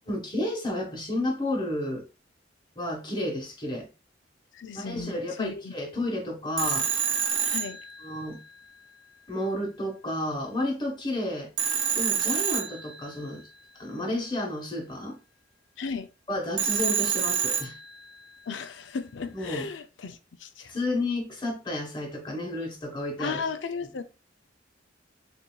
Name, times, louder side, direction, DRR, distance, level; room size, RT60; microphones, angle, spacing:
voice 1, 0.1-2.0 2.8-3.9 4.7-6.9 8.0-8.4 9.3-11.5 11.9-13.4 13.8-15.2 16.3-17.8 19.3-19.7 20.7-23.4, left 1 dB, 25° left, 1.2 m, -31 dB
voice 2, 4.5-5.7 7.5-7.8 15.8-16.1 18.5-20.8 23.2-24.0, left 5 dB, 85° left, 0.5 m, -35 dB
Telephone, 6.6-8.5 11.6-13.4 16.6-18.2, right 8 dB, 90° right, 0.8 m, -28 dB
6.6 x 2.7 x 2.3 m
head